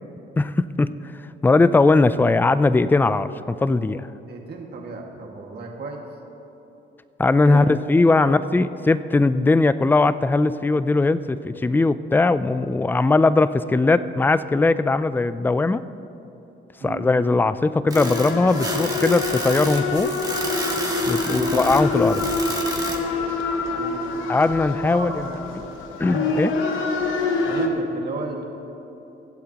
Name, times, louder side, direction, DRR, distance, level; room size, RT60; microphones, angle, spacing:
voice 1, 0.4-0.9 1.4-4.1 7.2-15.8 16.8-20.1 21.1-22.3 24.3-25.3 25.5-25.6 26.0-26.5, left 3 dB, 10° left, 14 dB, 0.3 m, -19 dB
voice 2, 4.3-6.0 7.4-7.7 8.2-8.4 16.8-17.0 21.2-21.5 23.8-24.0 24.8-25.4 27.5-28.4, right 4 dB, 55° right, 0 dB, 1.9 m, -34 dB
sound 1, 17.9-27.7, left 3 dB, 85° left, 1.1 m, -26 dB
sound 2, 17.9-23.0, right 2 dB, 20° right, 1.9 m, -31 dB
24.0 x 8.0 x 2.9 m, 3.0 s
cardioid pair, 90°, 20 cm